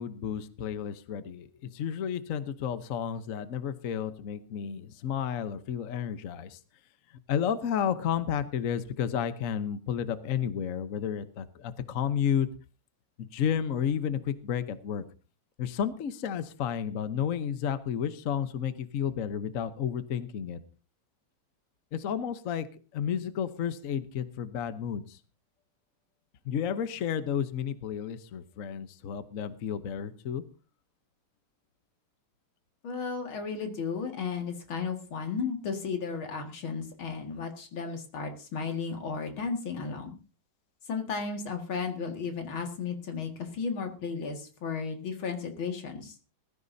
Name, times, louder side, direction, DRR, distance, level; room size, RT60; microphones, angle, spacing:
voice 1, 0.0-6.6 7.1-12.5 13.2-15.0 15.6-20.6 21.9-22.7 22.9-25.2 26.4-30.4, left 8 dB, 50° left, 11 dB, 1.1 m, -32 dB
voice 2, 32.8-40.1 40.9-46.1, left 5 dB, 85° left, 4 dB, 2.8 m, -34 dB
20.5 x 14.0 x 2.7 m, 0.35 s
omnidirectional pair, 2.2 m